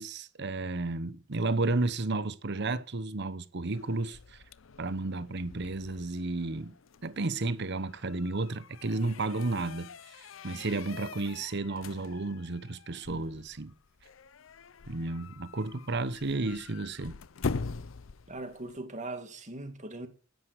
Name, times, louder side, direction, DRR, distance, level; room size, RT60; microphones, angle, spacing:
voice 1, 0.0-4.4 4.8-6.7 7.0-9.9 10.2-13.7 14.9-17.2, right 2 dB, 60° right, 1.0 m, -32 dB
sound 1, 3.7-18.8, left 4 dB, 75° left, 0.6 m, -43 dB
voice 2, 18.3-20.1, right 2 dB, 40° right, 2.4 m, -40 dB
11.0 x 10.5 x 6.4 m
head